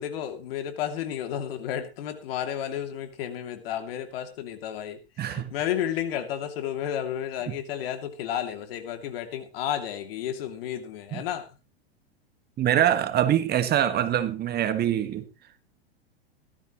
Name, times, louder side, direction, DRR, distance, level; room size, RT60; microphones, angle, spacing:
voice 1, 0.0-11.5, left 10 dB, 65° left, 7 dB, 2.7 m, -32 dB
voice 2, 5.2-5.5 7.5-7.6 11.1-11.2 12.6-15.2, right 11 dB, 30° right, 10 dB, 1.7 m, -24 dB
16.5 x 13.0 x 3.1 m, 0.28 s
hypercardioid pair, 110°, 31 cm